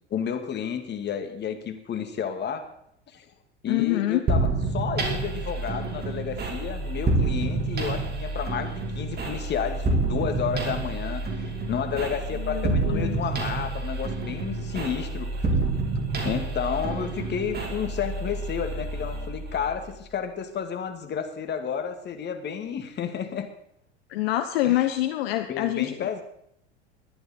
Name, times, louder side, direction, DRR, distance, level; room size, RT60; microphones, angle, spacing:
voice 1, 0.1-2.6 3.1-3.3 3.6-11.2 11.7-15.5 16.2-23.5 24.6-24.9 25.5-26.2, left 7 dB, 30° left, 6 dB, 2.2 m, -31 dB
voice 2, 3.7-4.2 12.4-13.2 24.1-25.9, left 15 dB, 60° left, 9 dB, 1.0 m, -26 dB
sound 1, 4.3-19.9, right 2 dB, 30° right, 3.6 m, -28 dB
20.0 x 12.0 x 4.5 m, 0.75 s
figure-of-eight pair, 80°, 34 cm